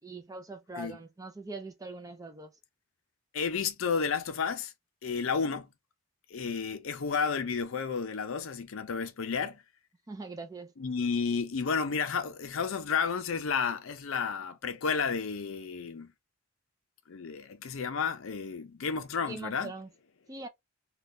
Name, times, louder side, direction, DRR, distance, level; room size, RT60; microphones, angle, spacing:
voice 1, 0.0-2.5 10.1-10.7 19.3-19.9 20.3-20.5, right 2 dB, 15° right, 0.4 m, -42 dB
voice 2, 3.3-4.7 5.0-5.7 6.3-9.6 10.8-16.1 17.1-19.7, left 5 dB, 65° left, 0.5 m, -32 dB
2.6 x 2.3 x 3.5 m
head